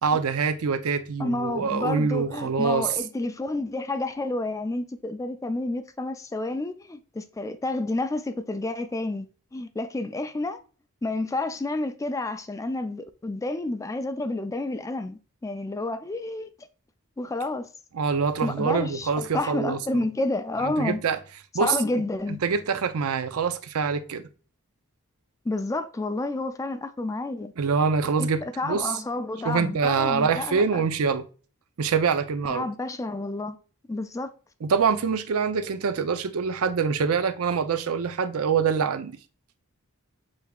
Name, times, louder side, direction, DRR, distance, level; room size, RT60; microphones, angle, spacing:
voice 1, 0.0-2.9 17.9-20.0 20.6-21.2 21.5-21.8 22.4-24.2 27.6-28.9 29.4-31.2 31.8-32.7 34.6-39.2, right 5 dB, 75° right, 0.5 m, -25 dB
voice 2, 1.2-10.6 11.0-16.5 17.2-17.7 18.4-21.0 21.6-22.4 25.5-27.5 28.2-30.8 32.5-33.6 33.9-34.3, left 2 dB, 15° left, 0.3 m, -30 dB
6.4 x 3.4 x 2.3 m
head